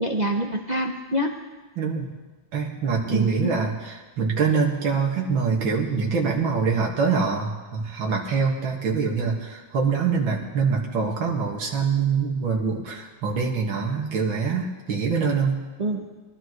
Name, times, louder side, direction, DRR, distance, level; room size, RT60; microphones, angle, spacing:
voice 1, 0.0-1.4 3.1-3.5 15.8-16.1, right 1 dB, 45° right, 1 dB, 0.5 m, -26 dB
voice 2, 1.8-2.1 2.5-15.6, right 5 dB, 80° right, -1 dB, 2.5 m, -24 dB
22.5 x 13.0 x 3.2 m, 1.3 s
omnidirectional pair, 2.2 m